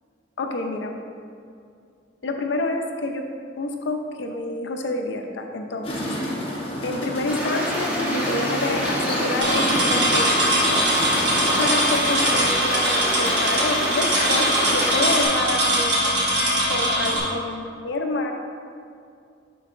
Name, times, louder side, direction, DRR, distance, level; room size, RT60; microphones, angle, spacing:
voice 1, 0.4-0.9 2.2-3.2 3.6-5.9 6.8-10.8 11.6-16.1 16.7-18.3, left 2 dB, 80° left, 3 dB, 0.6 m, -28 dB
sound 1, 5.8-12.5, equal, 30° left, 1.0 m, -30 dB
Stream, 7.3-15.2, equal, 10° right, 1.0 m, -27 dB
sound 2, 9.4-17.2, right 1 dB, 65° right, 1.3 m, -22 dB
10.0 x 3.9 x 2.5 m, 2.4 s
head